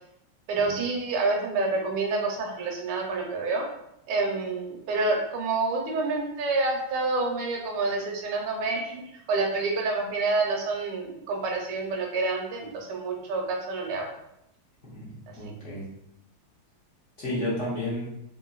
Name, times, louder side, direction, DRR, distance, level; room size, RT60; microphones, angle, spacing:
voice 1, 0.5-3.6 4.1-9.0 9.3-14.1, right 3 dB, 70° right, 1 dB, 1.2 m, -28 dB
voice 2, 14.8-15.8 17.2-18.0, left 1 dB, 45° left, -8 dB, 1.0 m, -32 dB
3.8 x 2.5 x 2.2 m, 0.79 s
omnidirectional pair, 2.3 m